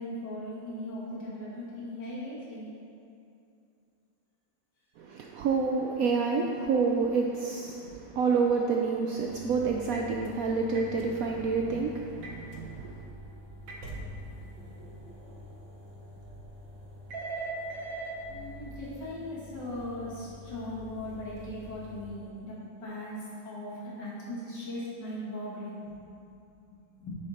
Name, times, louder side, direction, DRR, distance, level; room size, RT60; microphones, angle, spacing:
voice 1, 0.0-2.7 14.3-14.5 14.8-15.0 18.3-25.9 26.7-27.1, left 1 dB, 70° left, -8 dB, 2.6 m, -39 dB
voice 2, 5.0-13.0, right 4 dB, 75° right, 1 dB, 0.8 m, -28 dB
sound 1, 9.2-22.2, right 1 dB, 90° right, 1.7 m, -43 dB
9.8 x 5.1 x 4.2 m, 2.6 s
omnidirectional pair, 1.9 m